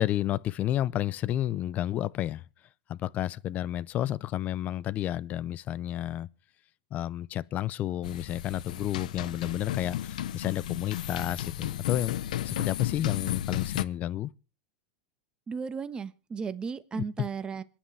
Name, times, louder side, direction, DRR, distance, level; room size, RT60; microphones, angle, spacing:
voice 1, 0.0-2.4 2.9-6.3 6.9-12.1 12.4-14.3 17.0-17.1, left 12 dB, 40° left, 0.6 m, -31 dB
sound 1, 8.0-13.8, left 11 dB, 80° left, 0.8 m, -34 dB
voice 2, 15.5-17.6, right 5 dB, 20° right, 1.2 m, -35 dB
27.0 x 10.0 x 3.3 m
hypercardioid pair, 110°, 4 cm